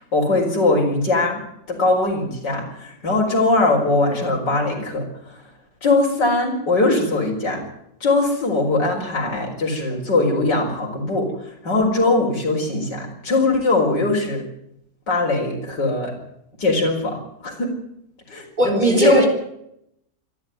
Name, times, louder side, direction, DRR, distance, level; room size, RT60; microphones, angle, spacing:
voice 1, 0.0-1.4 1.7-5.4 5.8-7.6 8.0-14.4 15.1-16.1 16.6-17.7 18.3-19.3, left 2 dB, 75° left, -1 dB, 5.1 m, -21 dB
voice 2, 18.6-19.3, right 1 dB, 25° right, 4 dB, 4.4 m, -18 dB
27.0 x 11.0 x 9.3 m, 0.76 s
omnidirectional pair, 1.9 m